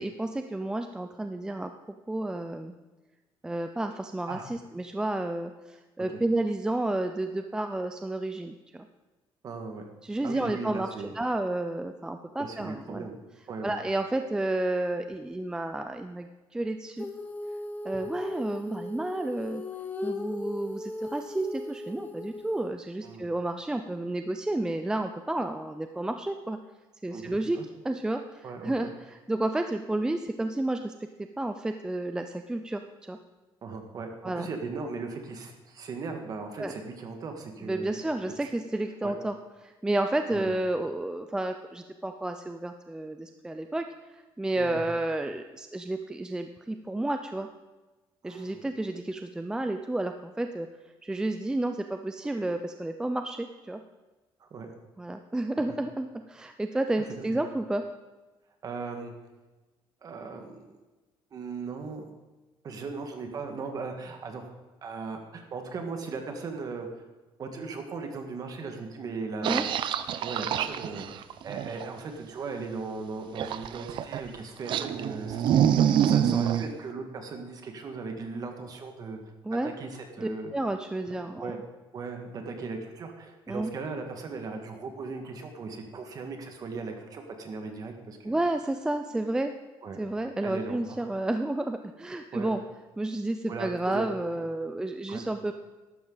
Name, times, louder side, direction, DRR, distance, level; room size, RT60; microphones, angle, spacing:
voice 1, 0.0-1.7 2.1-2.7 3.4-8.9 10.0-13.1 13.6-17.1 17.8-19.6 20.0-26.6 27.0-27.6 27.8-31.1 31.4-33.2 34.2-34.5 36.6-36.7 37.6-39.4 39.6-43.8 44.1-47.5 48.2-50.7 51.0-53.8 55.0-57.8 69.4-69.7 79.4-79.7 80.2-81.6 83.5-83.7 88.2-89.5 90.0-92.6 93.0-95.5, right 2 dB, 10° right, 7 dB, 0.4 m, -31 dB
voice 2, 9.4-9.8 10.2-11.1 12.4-13.2 13.5-13.8 23.0-23.3 27.1-27.7 28.4-28.9 33.6-37.9 38.4-38.5 39.0-39.1 40.3-40.5 44.5-44.9 48.2-48.6 52.3-52.4 54.4-54.7 55.7-55.8 57.2-57.4 58.6-59.1 60.0-60.8 61.3-62.0 62.6-64.5 64.8-66.9 67.4-69.7 70.2-71.1 71.4-79.3 79.6-80.5 81.4-81.6 81.9-88.4 89.8-90.0 90.4-91.0 92.3-92.5 93.5-94.1 94.3-94.4 95.1-95.2, right 4 dB, 40° right, 4 dB, 1.7 m, -38 dB
Female singing, 17.0-22.7, left 2 dB, 20° left, 1.1 m, -38 dB
sound 1, 69.4-71.9 73.4-74.3 74.7-76.6, right 9 dB, 55° right, 0.6 m, -26 dB
13.5 x 12.0 x 4.0 m, 1.2 s
cardioid pair, 150°, 10 cm